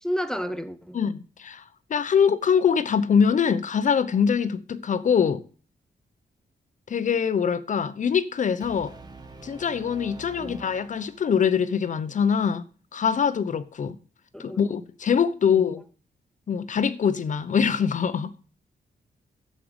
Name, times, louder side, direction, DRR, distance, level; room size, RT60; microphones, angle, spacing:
voice 1, 0.0-1.0 10.4-10.6 14.3-14.8 15.4-15.7, equal, 5° left, 0.6 m, -32 dB
voice 2, 0.9-1.6 1.9-5.4 6.9-8.9 9.4-12.6 12.9-14.0 14.4-15.8 16.5-18.3, left 7 dB, 50° left, 0.9 m, -23 dB
Brass instrument, 8.6-11.7, right 3 dB, 25° right, 1.6 m, -46 dB
11.5 x 7.7 x 5.1 m
wide cardioid pair, 150°, 17 cm